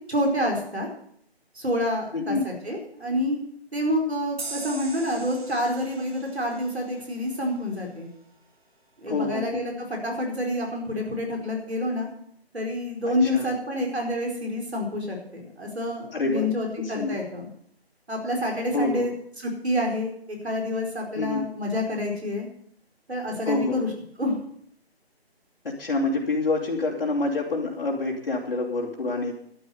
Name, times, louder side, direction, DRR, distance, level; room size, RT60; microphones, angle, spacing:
voice 1, 0.1-0.9 1.5-3.4 3.7-8.1 9.0-12.1 12.5-17.5 18.1-19.1 19.4-22.5 23.1-23.9 24.2-24.4, left 1 dB, 80° right, 0 dB, 4.7 m, -28 dB
voice 2, 2.1-2.5 9.1-9.6 13.0-13.5 16.1-16.5 16.8-17.2 18.7-19.1 21.2-21.4 23.4-23.8 25.6-29.3, left 3 dB, 60° left, -4 dB, 3.2 m, -27 dB
sound 1, 4.4-7.7, right 3 dB, 65° right, 3.8 m, -41 dB
12.0 x 9.1 x 8.2 m, 0.66 s
figure-of-eight pair, 155°, 32 cm